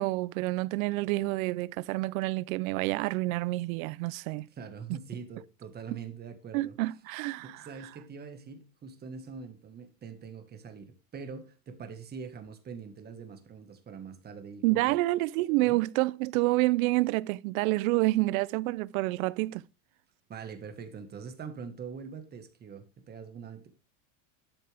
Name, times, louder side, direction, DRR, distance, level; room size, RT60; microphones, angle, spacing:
voice 1, 0.0-4.5 4.9-5.0 6.5-7.6 14.6-19.6, right 20 dB, 75° right, 0.5 m, -28 dB
voice 2, 4.5-6.7 7.4-15.0 15.6-15.8 20.3-23.8, right 6 dB, 25° right, 1.5 m, -43 dB
12.0 x 6.6 x 3.4 m
supercardioid pair, 150°, 42 cm